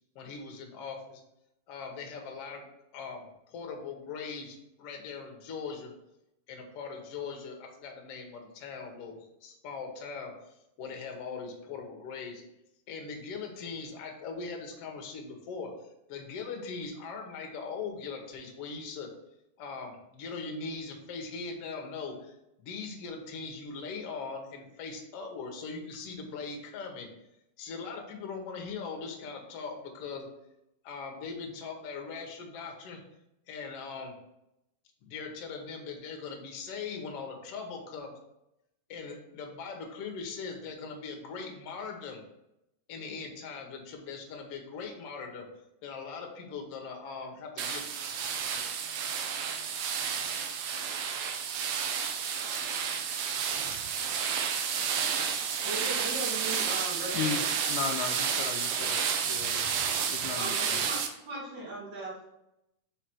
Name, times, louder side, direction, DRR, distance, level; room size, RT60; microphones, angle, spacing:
voice 1, 0.1-1.2 1.7-2.7 2.9-5.9 6.5-10.3 10.8-12.4 12.9-15.7 16.1-19.1 19.6-27.1 27.6-30.3 30.8-33.0 33.5-34.1 35.0-38.1 38.9-42.2 42.9-45.5 45.8-47.8, left 5 dB, 60° left, 2 dB, 1.7 m, -40 dB
sound 1, 47.6-61.1, right 7 dB, 80° right, 1.5 m, -31 dB
voice 2, 55.6-57.5 60.3-62.2, right 1 dB, 40° right, -6 dB, 2.5 m, -38 dB
voice 3, 57.7-59.7 60.1-60.8, left 7 dB, 80° left, 3 dB, 1.9 m, -35 dB
4.9 x 4.8 x 4.5 m, 0.85 s
omnidirectional pair, 3.8 m